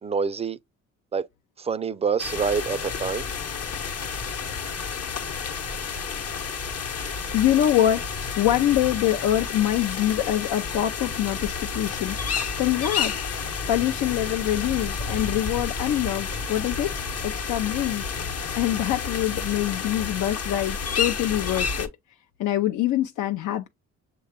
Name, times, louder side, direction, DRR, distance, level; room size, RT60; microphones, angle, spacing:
voice 1, 0.0-0.6 1.1-1.3 1.6-3.3, right 5 dB, 20° right, 0.3 m, -26 dB
sound 1, 2.2-21.9, left 5 dB, 55° left, 1.0 m, -30 dB
voice 2, 7.3-8.0 8.4-12.2 12.6-13.1 13.7-16.9 17.2-18.1 18.6-21.9 22.4-23.7, left 13 dB, 80° left, 0.5 m, -24 dB
6.5 x 2.3 x 3.4 m
cardioid pair, 90°, 30 cm